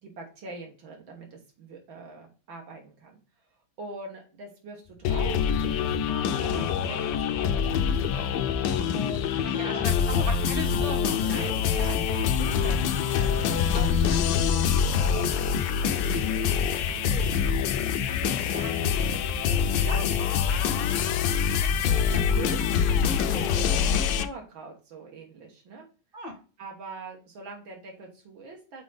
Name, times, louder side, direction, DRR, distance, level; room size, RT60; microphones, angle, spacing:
voice 1, 0.0-3.2 3.8-7.8 8.1-9.9 11.2-16.6 16.9-17.3 18.1-19.0 19.4-19.7 20.3-20.7 21.3-22.6 22.9-25.9 26.6-28.8, right 3 dB, 80° right, 0 dB, 2.1 m, -43 dB
sound 1, 4.9-12.9 13.2-20.7, left 3 dB, 40° left, 0.6 m, -39 dB
sound 2, 5.0-24.3, left 7 dB, 75° left, 1.2 m, -25 dB
voice 2, 9.5-12.2 13.9-14.3 19.8-20.2 26.1-26.3, equal, 35° right, 4 dB, 1.0 m, -37 dB
6.1 x 4.0 x 3.9 m, 0.36 s
omnidirectional pair, 2.1 m